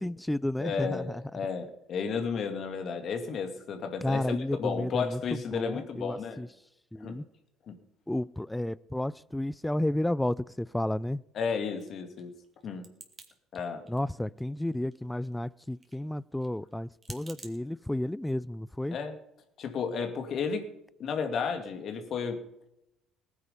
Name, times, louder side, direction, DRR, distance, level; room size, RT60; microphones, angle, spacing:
voice 1, 0.0-1.2 4.0-6.5 6.9-7.3 8.1-11.2 13.9-19.0, left 1 dB, 10° left, 0.5 m, -32 dB
voice 2, 0.6-6.4 7.0-7.2 7.7-7.8 11.3-12.3 12.6-12.8 13.5-13.9 18.9-19.1 19.6-20.7 21.0-22.4, left 6 dB, 55° left, 2.4 m, -33 dB
sound 1, 11.8-13.3 13.5-14.3 14.5-17.6, right 3 dB, 30° right, 3.0 m, -51 dB
19.0 x 9.9 x 5.3 m
hypercardioid pair, 60°, 0 cm